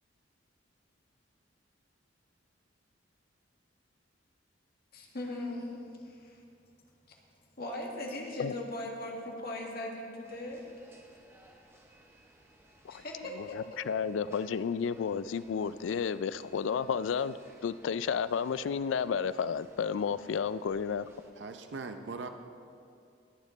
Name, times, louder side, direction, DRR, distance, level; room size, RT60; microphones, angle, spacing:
voice 1, 4.9-6.4 7.1-7.2 7.6-10.6 12.9-13.8, left 1 dB, 55° left, 0 dB, 1.7 m, -39 dB
sound 1, 10.2-21.3, right 1 dB, 15° right, 1.1 m, -59 dB
voice 2, 13.3-17.4 17.6-21.1, left 6 dB, 90° left, 16 dB, 0.3 m, -32 dB
voice 3, 21.4-22.3, right 4 dB, 70° right, 7 dB, 0.6 m, -40 dB
20.5 x 7.4 x 4.0 m, 2.5 s
head